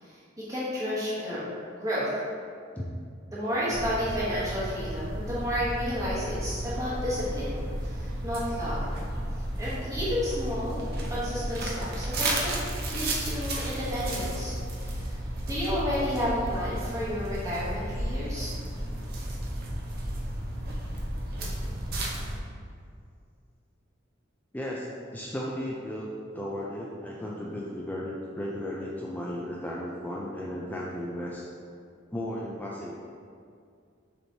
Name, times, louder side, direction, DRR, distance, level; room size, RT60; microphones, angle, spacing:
voice 1, 0.0-1.4 1.8-2.1 3.3-8.8 9.6-10.8 11.1-12.5 12.9-14.5 14.8-15.2 15.5-18.5, equal, 15° right, -9 dB, 1.0 m, -31 dB
sound 1, 3.7-22.4, right 1 dB, 50° right, 0.6 m, -33 dB
voice 2, 24.5-26.1 26.3-31.5 32.1-33.0, left 1 dB, 10° left, -4 dB, 0.3 m, -35 dB
6.5 x 3.0 x 2.7 m, 2.3 s
head